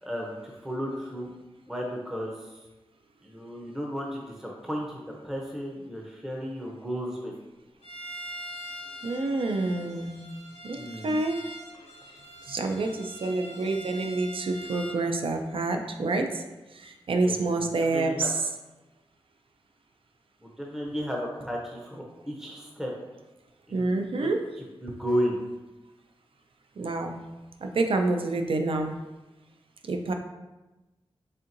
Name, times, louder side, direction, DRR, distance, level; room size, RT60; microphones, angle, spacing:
voice 1, 0.0-1.3 1.7-2.6 3.2-7.3 10.8-11.1 17.2-17.7 17.9-18.3 20.4-22.9 23.7-23.9 24.2-24.3 24.8-25.4, equal, 5° right, -1 dB, 0.6 m, -33 dB
Bowed string instrument, 7.8-15.1, equal, 85° left, 0.7 m, -43 dB
voice 2, 9.0-10.3 10.6-11.4 12.5-16.4 16.7-18.4 23.7-24.4 26.8-27.2 27.6-28.9 29.8-30.1, right 2 dB, 65° right, 4 dB, 0.4 m, -28 dB
4.2 x 3.6 x 2.6 m, 1.1 s
wide cardioid pair, 85°, 10 cm